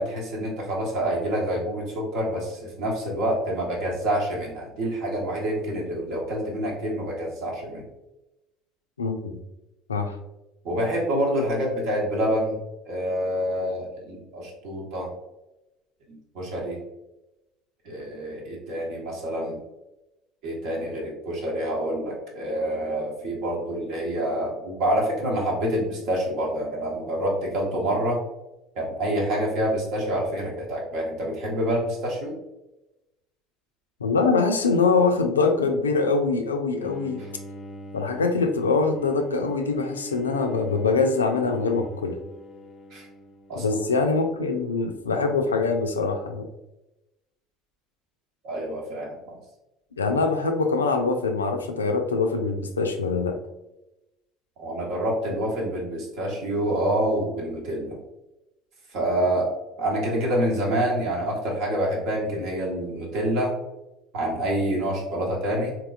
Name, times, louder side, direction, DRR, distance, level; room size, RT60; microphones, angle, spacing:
voice 1, 0.0-7.9 10.6-12.6 12.8-15.1 16.3-16.8 17.8-19.6 20.4-28.2 28.8-32.4 42.9-43.1 43.5-43.6 48.4-49.4 54.6-58.0 58.9-59.5 59.8-63.5 64.1-65.7, right 1 dB, 60° right, -1 dB, 1.0 m, -27 dB
voice 2, 9.0-9.4 9.9-10.2 34.0-37.2 37.9-42.2 43.6-46.5 50.0-53.4, left 4 dB, 85° left, 5 dB, 0.3 m, -23 dB
Bowed string instrument, 36.8-44.0, right 1 dB, 30° left, 0.5 m, -42 dB
3.7 x 2.7 x 2.3 m, 0.96 s
figure-of-eight pair, 60°, 0 cm